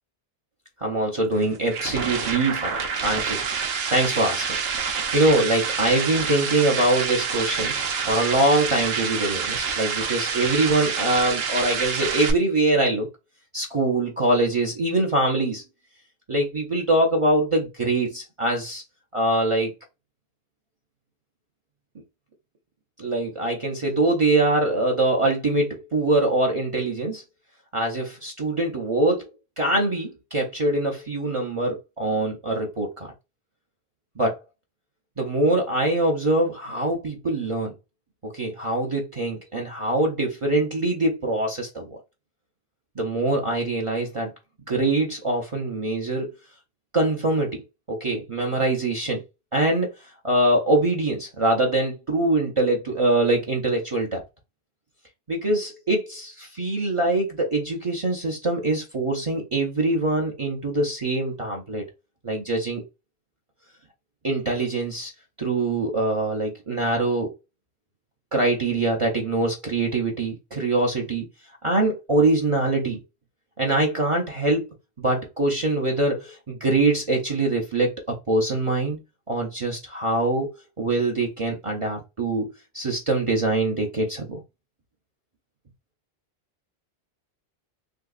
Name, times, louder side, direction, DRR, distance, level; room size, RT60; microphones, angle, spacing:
voice 1, 0.8-3.4 3.9-4.6 4.9-13.1 13.5-15.6 16.3-18.8 19.1-19.7 23.0-27.2 27.7-29.3 29.6-33.1 34.2-34.4 35.2-37.7 38.2-42.0 43.0-44.3 44.7-46.3 46.9-47.6 47.9-49.2 49.5-49.9 50.2-54.2 55.3-61.9 62.2-62.8 64.2-65.1 65.4-67.3 68.3-71.2 71.6-73.0 73.6-74.7 75.0-79.0 79.3-80.5 80.8-82.5 82.7-84.4, right 2 dB, 35° right, 0.7 m, -23 dB
sound 1, 1.3-12.3, right 6 dB, 70° right, 0.9 m, -27 dB
3.6 x 2.8 x 2.4 m
omnidirectional pair, 1.1 m